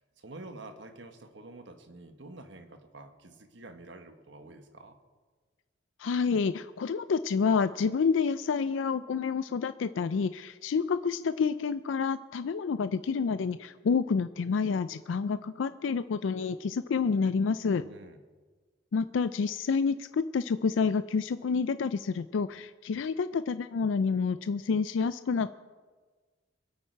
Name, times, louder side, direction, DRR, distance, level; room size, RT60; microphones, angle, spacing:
voice 1, 0.0-5.0 17.8-18.2, right 2 dB, 70° right, 7 dB, 1.3 m, -48 dB
voice 2, 6.0-17.8 18.9-25.5, left 5 dB, 85° left, 13 dB, 0.4 m, -28 dB
24.0 x 8.6 x 4.6 m, 1.4 s
head